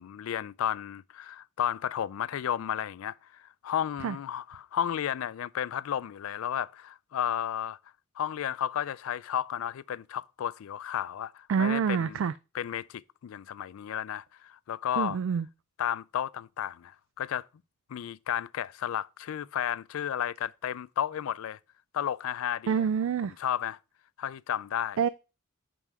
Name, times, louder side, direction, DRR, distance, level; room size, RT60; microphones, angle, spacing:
voice 1, 0.0-7.8 8.2-12.2 12.5-15.2 15.8-17.5 17.9-21.6 21.9-22.9 23.4-23.8 24.2-25.0, left 10 dB, 90° left, 0.3 m, -33 dB
voice 2, 11.5-12.3 15.0-15.5 22.7-23.3 25.0-25.1, right 7 dB, 70° right, 0.3 m, -27 dB
6.0 x 5.5 x 4.6 m
head